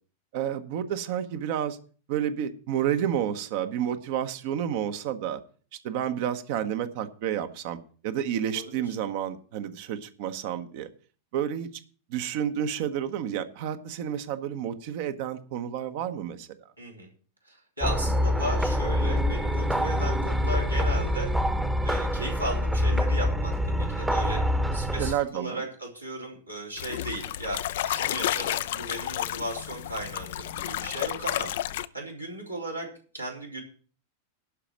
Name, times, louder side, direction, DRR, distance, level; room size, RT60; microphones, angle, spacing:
voice 1, 0.3-1.8 2.1-5.4 5.8-7.8 8.0-10.9 11.3-11.7 12.1-16.5 24.7-25.6, right 9 dB, 50° right, 9 dB, 1.0 m, -30 dB
voice 2, 8.5-8.8 16.8-17.1 17.5-21.3 21.8-24.4 24.7-32.9 33.1-33.6, right 1 dB, 90° right, -2 dB, 3.6 m, -36 dB
sound 1, 17.8-25.1, equal, 5° right, 1.0 m, -25 dB
sound 2, 26.8-31.9, left 13 dB, 55° left, 0.5 m, -31 dB
11.5 x 5.0 x 8.6 m, 0.42 s
figure-of-eight pair, 90°, 0 cm